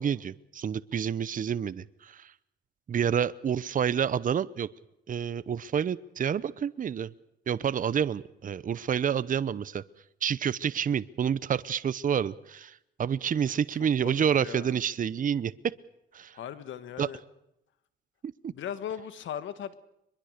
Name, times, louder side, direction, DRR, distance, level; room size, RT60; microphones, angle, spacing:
voice 1, 0.0-2.3 2.9-4.7 5.1-7.1 7.5-9.8 10.2-15.5 16.1-16.4 17.0-17.1 18.2-18.5, right 8 dB, 45° right, 17 dB, 0.8 m, -29 dB
voice 2, 13.8-14.8 16.3-17.2 18.5-19.8, left 9 dB, 75° left, 13 dB, 1.7 m, -38 dB
24.0 x 22.0 x 6.7 m, 0.83 s
cardioid pair, 90°, 20 cm